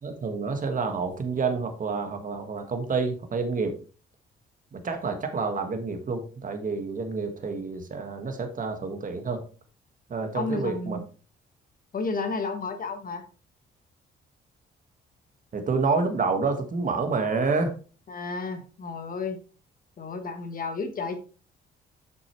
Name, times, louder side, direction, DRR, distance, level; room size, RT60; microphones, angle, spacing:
voice 1, 0.0-3.7 4.7-9.4 10.1-11.0 15.5-17.8, right 4 dB, 40° right, 6 dB, 1.7 m, -28 dB
voice 2, 10.3-11.0 11.9-13.2 18.1-19.4 20.0-21.2, left 3 dB, 45° left, 7 dB, 1.2 m, -32 dB
7.9 x 6.4 x 3.1 m, 0.37 s
cardioid pair, 90°, 20 cm